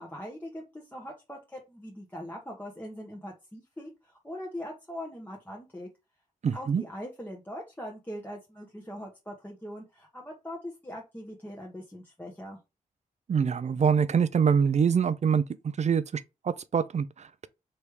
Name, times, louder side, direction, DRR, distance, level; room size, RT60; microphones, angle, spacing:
voice 1, 0.0-5.9 6.5-12.6, equal, 10° left, 1.2 m, -41 dB
voice 2, 6.4-6.8 13.3-17.5, right 6 dB, 45° right, 0.5 m, -25 dB
3.3 x 3.2 x 4.7 m
supercardioid pair, 45°, 16 cm